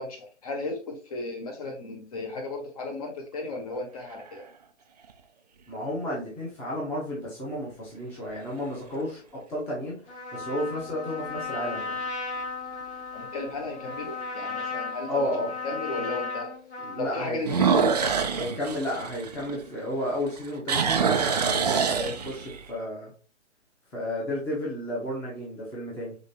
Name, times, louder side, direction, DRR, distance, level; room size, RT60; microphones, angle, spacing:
voice 1, 0.0-4.5 13.1-15.3 15.6-16.5 17.0-17.9, left 2 dB, 30° left, 3 dB, 1.0 m, -35 dB
sound 1, 3.8-4.4 5.1-5.2 10.4-10.9 11.4-11.5 12.0-12.1 12.4-12.5 14.0-14.1 17.4-19.9 20.3-22.6, right 6 dB, 35° right, 0.4 m, -25 dB
voice 2, 5.7-10.0 10.3-12.0 15.1-15.5 16.0-16.1 16.8-17.4 18.4-23.1 23.9-26.1, left 1 dB, 5° left, -5 dB, 0.8 m, -32 dB
Trumpet, 10.1-17.2, left 4 dB, 65° left, 1.9 m, -35 dB
5.1 x 3.3 x 2.7 m, 0.37 s
figure-of-eight pair, 145°, 36 cm